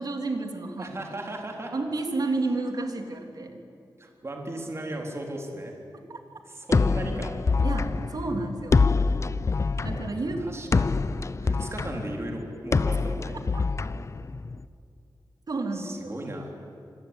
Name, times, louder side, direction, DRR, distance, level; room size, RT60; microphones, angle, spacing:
voice 1, 0.0-1.0 1.7-3.6 6.1-6.2 7.6-8.8 9.8-10.4 13.0-13.1 15.5-16.2, right 3 dB, 55° right, 4 dB, 3.3 m, -31 dB
voice 2, 0.8-1.7 2.3-2.4 4.0-5.7 6.5-7.4 10.4-13.4 15.7-16.5, right 1 dB, 35° right, 1 dB, 3.8 m, -36 dB
sound 1, 6.7-14.6, left 4 dB, 40° left, 0.7 m, -25 dB
27.0 x 22.0 x 9.8 m, 2.6 s
wide cardioid pair, 130°, 8 cm